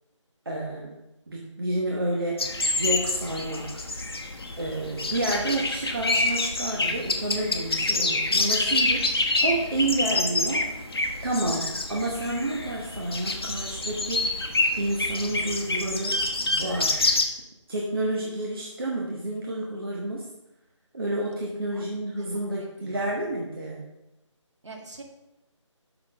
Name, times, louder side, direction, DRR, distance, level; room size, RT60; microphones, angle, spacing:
voice 1, 0.4-0.9 1.3-2.4 2.8-3.9 4.6-9.1 9.4-10.7 11.2-16.2 16.5-17.0 17.7-20.3 20.9-23.9, right 1 dB, 45° right, -2 dB, 1.1 m, -30 dB
sound 1, 2.4-17.2, left 2 dB, 50° left, 1.0 m, -27 dB
voice 2, 22.2-23.2 24.6-25.0, right 2 dB, 65° right, 1 dB, 1.9 m, -45 dB
6.0 x 6.0 x 5.8 m, 0.93 s
figure-of-eight pair, 180°, 16 cm